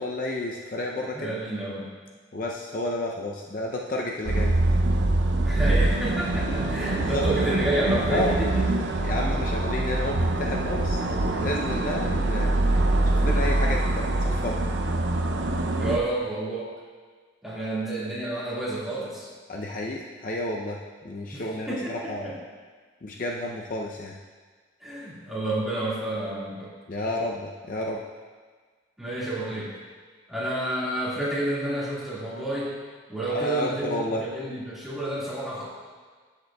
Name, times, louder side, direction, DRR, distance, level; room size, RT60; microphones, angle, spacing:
voice 1, 0.0-1.4 2.3-4.5 7.0-7.3 8.1-8.3 9.0-11.0 11.3-12.8 13.1-14.7 19.5-20.8 21.0-22.3 23.0-24.1 26.9-28.0 33.3-34.2, left 1 dB, 45° left, -1 dB, 0.5 m, -31 dB
voice 2, 1.1-2.0 5.4-8.7 15.8-16.7 17.4-19.3 21.3-22.4 24.8-26.7 29.0-29.7 30.3-32.7 33.1-35.7, right 1 dB, ahead, -8 dB, 1.8 m, -30 dB
sound 1, 4.2-16.0, right 2 dB, 70° right, 0.6 m, -24 dB
12.5 x 6.6 x 2.3 m, 1.5 s
head